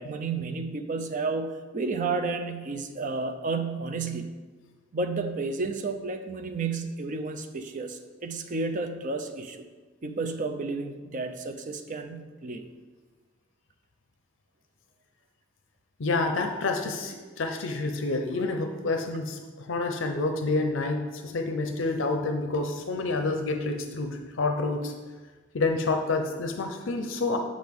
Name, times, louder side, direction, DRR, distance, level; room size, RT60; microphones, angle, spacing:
voice 1, 0.0-4.4 4.9-9.7 10.0-12.7, right 3 dB, 40° right, 7 dB, 0.5 m, -31 dB
voice 2, 16.0-24.9 25.5-27.4, left 3 dB, 70° left, 5 dB, 0.6 m, -28 dB
7.7 x 5.0 x 3.6 m, 1.3 s
head